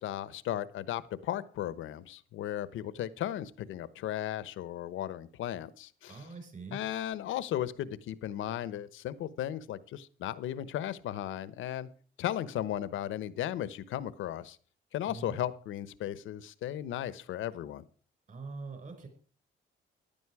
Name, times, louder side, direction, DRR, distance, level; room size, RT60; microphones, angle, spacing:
voice 1, 0.0-6.2 6.7-11.9 12.2-14.6 14.9-17.8, left 12 dB, 80° left, 16 dB, 1.1 m, -36 dB
voice 2, 6.1-6.8 15.1-15.4 18.3-19.1, right 4 dB, 40° right, 7 dB, 5.7 m, -43 dB
15.5 x 11.0 x 4.8 m, 0.42 s
cardioid pair, 90°, 20 cm